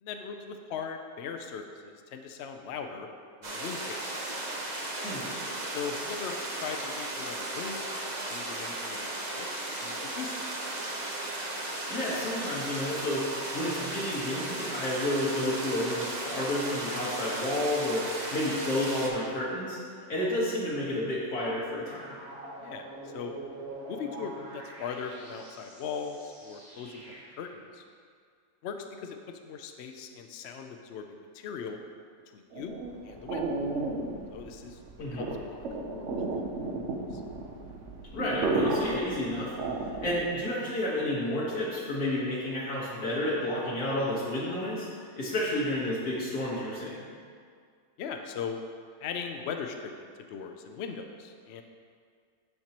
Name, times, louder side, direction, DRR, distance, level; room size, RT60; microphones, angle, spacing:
voice 1, 0.0-3.1 3.4-4.2 5.7-10.5 20.0-20.1 22.6-23.3 23.9-27.8 28.6-31.8 32.3-32.8 33.0-33.4 34.3-34.8 35.1-35.6 35.9-36.4 37.1-37.2 48.0-48.6 49.0-51.6, left 6 dB, 65° left, 5 dB, 0.7 m, -39 dB
sound 1, 3.4-19.1, right 2 dB, 35° right, 0.8 m, -35 dB
voice 2, 11.9-13.3 13.5-19.8 20.1-22.2 35.0-35.4 38.1-39.5 40.0-47.0, left 1 dB, 85° left, -6 dB, 1.8 m, -31 dB
sound 2, 21.8-27.5, right 2 dB, 80° right, 2.4 m, -45 dB
sound 3, 32.5-40.4, right 2 dB, 60° right, 0.9 m, -33 dB
12.5 x 4.5 x 2.9 m, 2.1 s
omnidirectional pair, 1.5 m